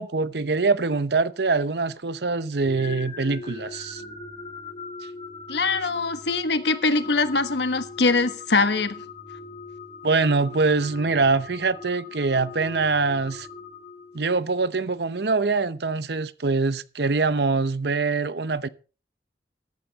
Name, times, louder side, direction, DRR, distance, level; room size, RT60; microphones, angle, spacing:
voice 1, 0.0-4.0 10.0-13.5 14.1-18.7, right 4 dB, 70° right, 0.8 m, -24 dB
sound 1, 2.6-14.6, left 4 dB, 30° left, 1.9 m, -40 dB
voice 2, 5.5-9.0, left 3 dB, 75° left, 1.3 m, -23 dB
14.5 x 11.5 x 4.1 m
head